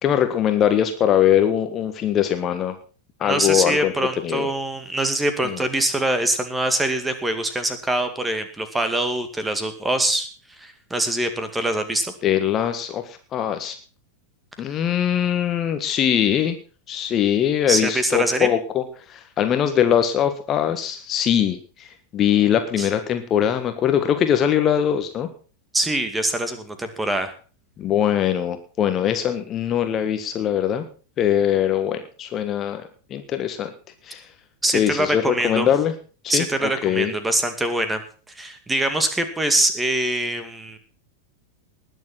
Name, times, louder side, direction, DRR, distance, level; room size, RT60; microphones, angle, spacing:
voice 1, 0.0-2.7 3.2-4.5 5.4-5.6 12.2-13.8 14.6-16.6 16.9-25.3 27.8-30.8 31.2-33.7 34.0-34.2 34.7-35.9 36.2-37.1, left 9 dB, 30° left, 8 dB, 1.5 m, -22 dB
voice 2, 3.2-10.3 10.6-12.1 17.7-18.5 22.8-22.9 25.7-27.3 34.6-35.7 36.3-38.0 38.4-40.8, right 1 dB, 10° right, 9 dB, 2.1 m, -24 dB
20.0 x 7.3 x 5.8 m, 0.38 s
figure-of-eight pair, 90°, 0 cm